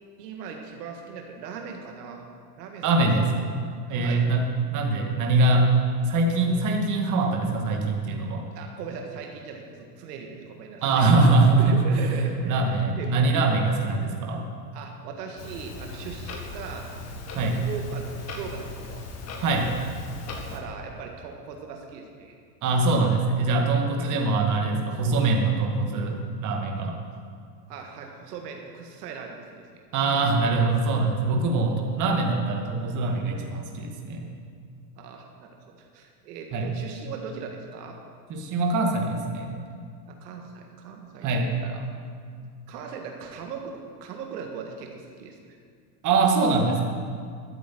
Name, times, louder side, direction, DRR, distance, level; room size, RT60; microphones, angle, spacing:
voice 1, 0.2-2.2 2.6-3.4 3.9-4.3 8.5-13.1 14.7-17.0 17.6-19.1 20.3-22.4 24.0-24.1 27.7-29.8 35.0-38.0 40.1-41.9 42.7-45.6, right 5 dB, 80° right, 2 dB, 1.8 m, -39 dB
voice 2, 2.8-3.2 3.9-4.4 4.7-5.7 6.0-8.4 10.8-11.9 12.4-14.4 17.3-17.7 19.4-19.7 22.6-26.9 29.9-34.3 36.5-36.7 38.3-39.5 41.2-41.4 46.0-46.8, right 3 dB, 40° right, 1 dB, 2.2 m, -23 dB
Clock, 15.4-20.6, left 3 dB, 30° left, 2.0 m, -38 dB
13.0 x 8.3 x 7.8 m, 2.2 s
supercardioid pair, 130°, 48 cm